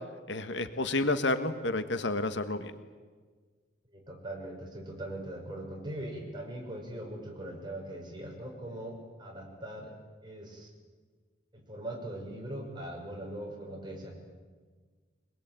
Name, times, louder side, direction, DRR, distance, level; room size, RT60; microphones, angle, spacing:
voice 1, 0.3-2.7, left 2 dB, 65° left, 10 dB, 1.4 m, -30 dB
voice 2, 3.9-9.9 10.2-10.7 11.5-14.1, right 1 dB, 25° right, 1 dB, 5.6 m, -41 dB
23.0 x 21.5 x 9.0 m, 1.5 s
head